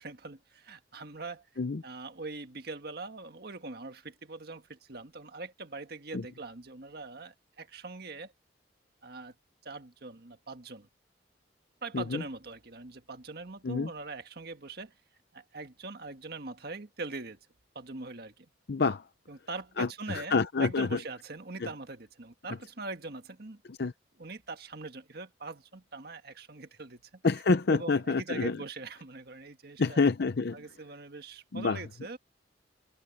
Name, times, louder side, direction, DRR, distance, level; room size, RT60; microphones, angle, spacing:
voice 1, 0.0-1.5 1.8-8.3 9.0-9.3 9.6-10.9 11.8-14.9 15.3-17.4 17.7-18.5 19.3-23.6 24.2-27.2 27.7-30.0 30.5-32.2, right 3 dB, 55° right, 1.6 m, -42 dB
voice 2, 18.7-19.0 19.8-21.0 21.6-21.7 23.7-23.9 27.2-28.6 29.8-30.6 31.5-31.8, left 4 dB, 60° left, 0.6 m, -27 dB
head